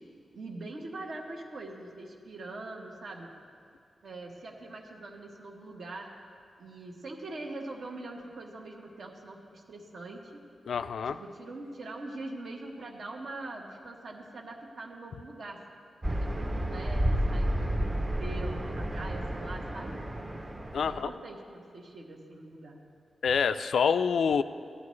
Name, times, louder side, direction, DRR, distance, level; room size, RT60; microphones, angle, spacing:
voice 1, 0.3-3.3 4.0-6.1 6.6-10.4 11.0-15.6 16.1-20.0 20.9-22.8, right 2 dB, 70° right, -1 dB, 1.3 m, -43 dB
voice 2, 10.7-11.2 20.7-21.1 23.2-24.4, left 6 dB, 85° left, 12 dB, 0.3 m, -26 dB
sound 1, 16.0-21.0, right 1 dB, 20° right, 0.6 m, -31 dB
15.5 x 11.0 x 3.2 m, 2.2 s
wide cardioid pair, 130°, 0 cm